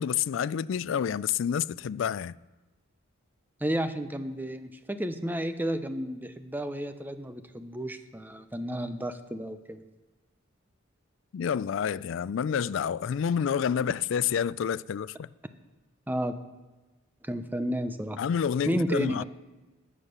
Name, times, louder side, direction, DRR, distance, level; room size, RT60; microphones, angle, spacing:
voice 1, 0.0-2.3 11.3-15.3 18.2-19.2, left 8 dB, 60° left, 0.3 m, -28 dB
voice 2, 3.6-9.8 16.1-16.4 17.2-18.2 18.7-19.2, equal, 10° right, 0.7 m, -32 dB
17.5 x 7.3 x 6.6 m
head